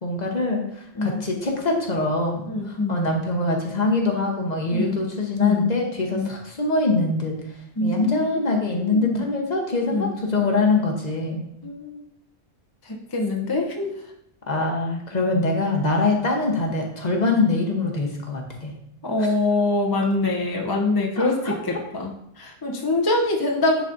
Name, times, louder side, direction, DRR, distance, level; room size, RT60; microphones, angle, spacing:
voice 1, 0.0-7.4 7.8-11.4 14.5-18.7 19.2-19.3 21.2-21.5, left 3 dB, 40° left, 1 dB, 1.0 m, -24 dB
voice 2, 2.5-3.0 4.7-5.0 5.4-5.8 6.1-6.3 7.8-9.2 9.9-10.1 11.6-12.0 12.8-13.9 19.0-23.9, left 2 dB, 25° left, -1 dB, 0.6 m, -24 dB
10.0 x 4.1 x 2.6 m, 0.77 s
omnidirectional pair, 1.1 m